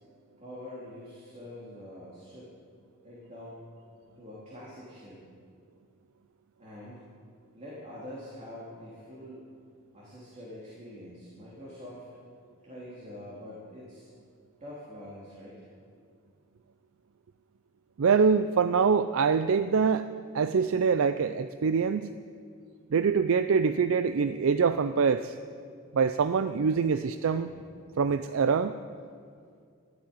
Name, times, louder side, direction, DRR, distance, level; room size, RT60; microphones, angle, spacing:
voice 1, 0.4-2.5 3.0-3.6 4.2-5.3 6.6-7.1 7.5-9.4 9.9-12.1 12.6-14.1 14.6-15.7 27.3-27.7, left 1 dB, 30° right, -7 dB, 2.9 m, -45 dB
voice 2, 18.0-20.1 20.3-22.1 22.9-25.3 25.9-27.5 28.0-28.8, right 5 dB, 65° right, 11 dB, 0.4 m, -24 dB
13.5 x 8.6 x 9.4 m, 2.3 s
head